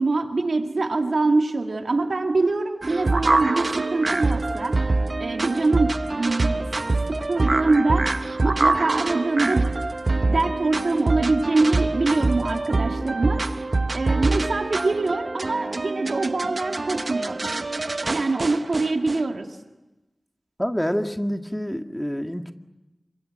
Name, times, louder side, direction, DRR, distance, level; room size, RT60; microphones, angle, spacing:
voice 1, 0.0-4.8 5.2-6.7 7.1-8.1 8.4-9.7 10.1-13.4 13.9-17.5 18.1-19.6, right 3 dB, 85° right, 4 dB, 2.3 m, -24 dB
sound 1, 2.8-19.2, right 2 dB, 60° right, 0.9 m, -25 dB
voice 2, 20.6-22.5, equal, 5° left, 6 dB, 1.9 m, -27 dB
27.0 x 25.5 x 7.8 m, 1.0 s
cardioid pair, 40°, 0 cm